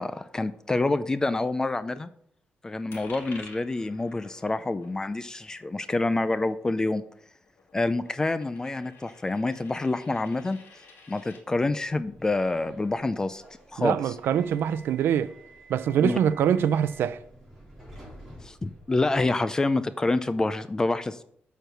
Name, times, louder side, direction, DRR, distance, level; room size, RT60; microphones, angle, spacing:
voice 1, 0.0-2.1 2.6-7.0 7.7-10.6 11.1-13.4 13.7-14.1 16.0-16.2 18.4-21.2, left 2 dB, 15° left, 0.3 m, -27 dB
Coin (dropping), 2.9-11.4, left 3 dB, 80° left, 1.9 m, -51 dB
Subway metro underground, 11.8-19.4, right 1 dB, 5° right, 3.6 m, -50 dB
voice 2, 13.8-15.3 15.7-17.2, right 9 dB, 80° right, 0.4 m, -24 dB
6.8 x 4.5 x 6.6 m
wide cardioid pair, 145°, 4 cm